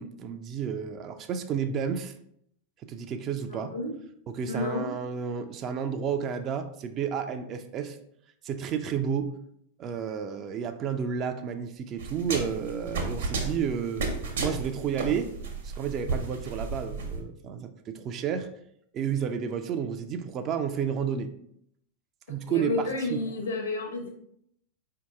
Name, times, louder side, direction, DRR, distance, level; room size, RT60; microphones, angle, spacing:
voice 1, 0.0-2.1 2.8-3.7 4.3-8.0 8.4-9.3 9.8-14.0 14.4-15.3 15.6-18.5 18.9-21.3 22.3-23.2, right 7 dB, 30° right, 8 dB, 0.3 m, -31 dB
voice 2, 3.5-3.9 4.5-4.9 22.5-24.1, left 2 dB, 70° left, 3 dB, 0.9 m, -31 dB
sound 1, 12.0-17.2, right 3 dB, 60° right, 0.9 m, -33 dB
4.3 x 2.8 x 3.4 m, 0.71 s
figure-of-eight pair, 90°, 0 cm